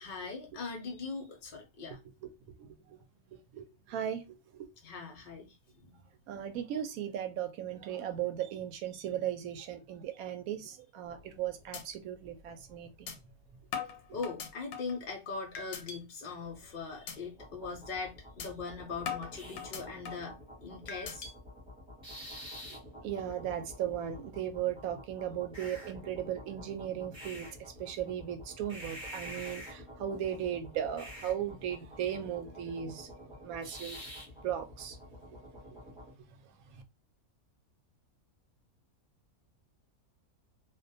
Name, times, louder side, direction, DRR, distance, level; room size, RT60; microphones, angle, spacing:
voice 1, 0.0-2.0 4.8-6.0 14.1-20.4 20.6-21.3, left 4 dB, 65° left, 0.4 m, -41 dB
voice 2, 2.6-3.0 3.3-4.7 6.3-13.1 14.1-14.2 23.0-33.1 33.4-34.0 34.4-35.0 36.7-36.8, right 10 dB, 75° right, 1.0 m, -37 dB
sound 1, 11.1-11.4 11.7-11.8 12.2-12.3 13.1-13.2 13.7-15.0 15.5-16.0 16.4-16.6 17.1-17.2 17.6-17.8 18.4-18.5 19.1-20.3 20.9-21.3, left 7 dB, 80° left, 1.1 m, -40 dB
sound 2, 17.3-36.1, equal, 5° right, 0.8 m, -48 dB
2.4 x 2.2 x 2.6 m
omnidirectional pair, 1.6 m